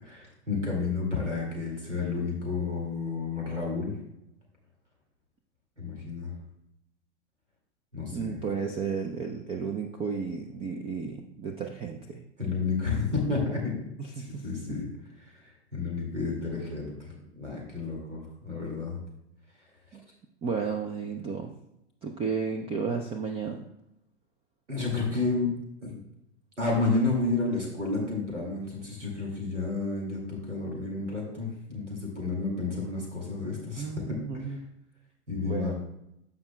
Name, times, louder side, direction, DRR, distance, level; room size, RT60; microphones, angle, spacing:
voice 1, 0.0-3.9 5.8-6.3 7.9-8.3 12.4-13.9 14.2-14.9 15.2-19.0 24.7-25.5 25.8-26.0 26.6-34.5 35.3-35.7, left 3 dB, 90° right, -1 dB, 2.2 m, -31 dB
voice 2, 8.1-12.2 14.0-14.8 19.9-20.0 20.4-21.5 22.0-23.6 33.8-34.6 35.4-35.7, right 5 dB, 15° right, 4 dB, 0.4 m, -33 dB
13.5 x 5.0 x 2.2 m, 0.82 s
figure-of-eight pair, 95°, 35 cm